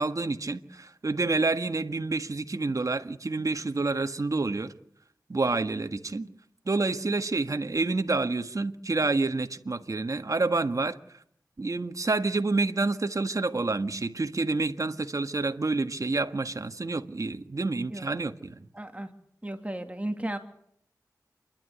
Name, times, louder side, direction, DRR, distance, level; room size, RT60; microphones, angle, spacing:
voice 1, 0.0-4.7 5.3-6.3 6.6-11.0 11.6-18.5, right 3 dB, 55° right, 1.6 m, -28 dB
voice 2, 17.9-18.3 18.7-19.1 19.4-20.4, right 1 dB, 20° right, 2.6 m, -35 dB
29.0 x 12.0 x 9.5 m
wide cardioid pair, 60°, 7 cm